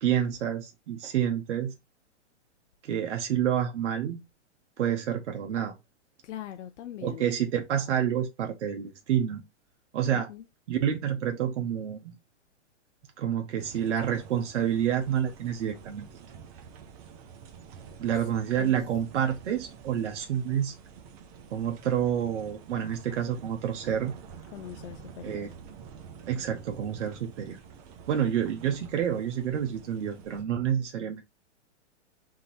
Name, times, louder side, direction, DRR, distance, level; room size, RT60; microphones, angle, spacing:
voice 1, 0.0-1.7 2.8-4.2 4.8-5.7 7.0-9.4 9.9-10.3 10.7-12.1 13.2-16.1 18.0-20.7 21.5-24.1 25.2-25.5 26.3-27.6 28.1-31.2, right 9 dB, 75° right, 0.9 m, -28 dB
voice 2, 6.2-7.3 10.1-10.5 18.6-18.8 24.5-25.5, left 11 dB, 75° left, 0.6 m, -42 dB
sound 1, 13.6-30.4, right 6 dB, 30° right, 0.7 m, -48 dB
3.8 x 2.6 x 4.2 m
hypercardioid pair, 150°, 36 cm